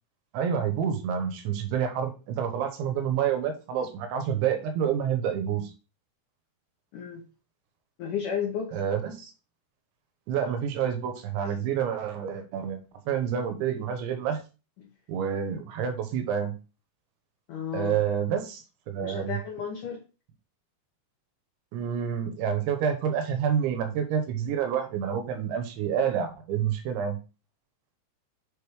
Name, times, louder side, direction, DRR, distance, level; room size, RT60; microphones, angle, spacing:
voice 1, 0.3-5.7 8.7-9.3 10.3-12.8 13.1-14.4 15.1-16.5 17.7-19.4 21.7-27.2, right 8 dB, 85° right, 6 dB, 3.3 m, -28 dB
voice 2, 6.9-7.2 8.0-8.7 11.4-11.5 14.8-14.9 17.5-18.0 19.0-20.0, left 7 dB, 70° left, -1 dB, 2.0 m, -33 dB
7.4 x 3.5 x 4.8 m, 0.32 s
omnidirectional pair, 5.3 m